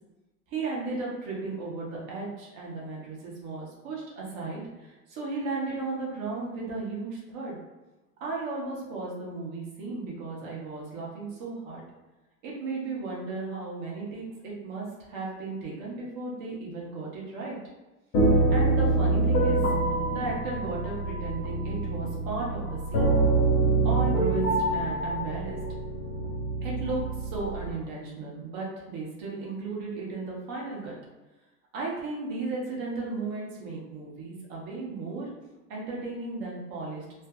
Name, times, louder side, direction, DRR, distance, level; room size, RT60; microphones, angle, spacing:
voice 1, 0.5-7.6 8.2-11.8 12.4-17.6 18.5-19.6 20.1-23.2 23.8-25.6 26.6-30.9 31.7-35.3 35.7-37.0, right 3 dB, 20° right, -3 dB, 0.3 m, -35 dB
sound 1, 18.1-27.7, right 2 dB, 55° left, 1.0 m, -25 dB
2.3 x 2.2 x 2.6 m, 1.1 s
hypercardioid pair, 115°, 50 cm